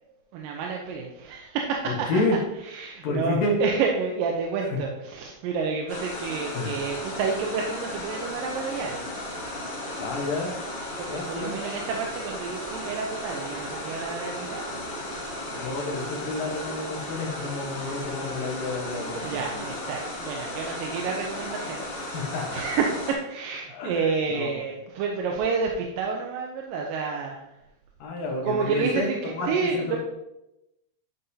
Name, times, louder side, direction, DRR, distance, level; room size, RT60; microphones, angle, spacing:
voice 1, 0.3-2.2 2.7-9.1 11.0-14.7 15.1-15.3 17.9-18.1 19.1-21.8 22.1-27.5 28.4-30.0, right 5 dB, 75° right, 1 dB, 2.2 m, -29 dB
voice 2, 1.9-2.4 3.0-3.6 4.7-4.8 6.5-6.8 10.0-10.6 11.1-11.6 15.5-19.6 22.1-22.6 23.7-24.6 28.0-30.0, left 2 dB, 70° left, 0 dB, 2.8 m, -30 dB
sound 1, 5.9-23.1, left 1 dB, 40° left, 2.9 m, -35 dB
11.0 x 5.2 x 2.7 m, 0.91 s
omnidirectional pair, 4.4 m